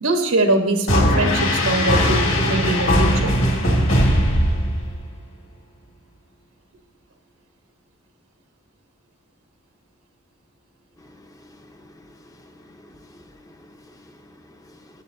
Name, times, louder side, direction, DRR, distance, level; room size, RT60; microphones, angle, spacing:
voice 1, 0.0-3.4, right 2 dB, 80° right, 4 dB, 1.1 m, -22 dB
sound 1, 0.9-5.2, equal, 60° left, 2.1 m, -19 dB
voice 2, 11.1-15.0, left 1 dB, 15° left, 6 dB, 0.7 m, -50 dB
19.0 x 7.5 x 2.7 m, 1.0 s
head